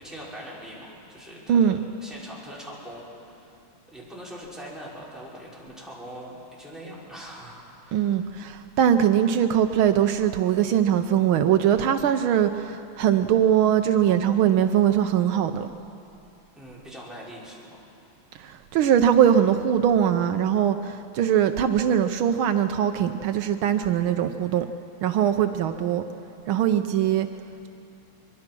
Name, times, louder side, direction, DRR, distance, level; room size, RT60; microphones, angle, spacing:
voice 1, 0.0-3.6 3.9-8.4 16.6-17.8, equal, ahead, -7 dB, 5.1 m, -42 dB
voice 2, 7.9-15.7 18.4-24.7 25.0-26.0 26.5-27.3, right 9 dB, 80° right, 8 dB, 1.5 m, -21 dB
23.5 x 23.0 x 6.1 m, 2.7 s
omnidirectional pair, 2.3 m